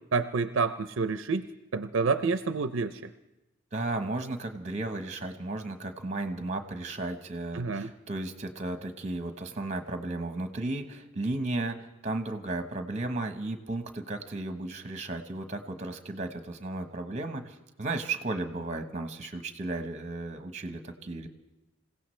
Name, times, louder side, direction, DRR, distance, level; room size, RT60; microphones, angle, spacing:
voice 1, 0.0-1.5 1.7-3.1 7.5-7.9, right 4 dB, 75° right, 10 dB, 0.5 m, -28 dB
voice 2, 3.7-21.3, right 2 dB, 35° right, 7 dB, 1.1 m, -34 dB
27.0 x 16.5 x 3.3 m, 0.97 s
head